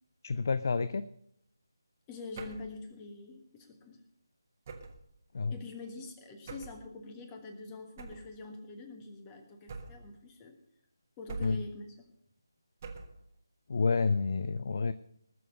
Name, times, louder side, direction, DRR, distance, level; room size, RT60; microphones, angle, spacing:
voice 1, 0.2-1.1 5.3-5.6 11.4-11.6 13.7-14.9, left 4 dB, 45° left, 15 dB, 0.4 m, -29 dB
voice 2, 2.1-4.0 5.5-10.6 11.2-11.9, left 3 dB, 15° left, 5 dB, 1.5 m, -45 dB
sound 1, 2.3-2.8 4.6-5.1 6.5-6.8 8.0-8.3 9.7-10.1 11.3-11.8 12.8-13.2, right 4 dB, 30° right, 1.4 m, -44 dB
19.5 x 7.0 x 6.5 m, 0.74 s
figure-of-eight pair, 155°, 2 cm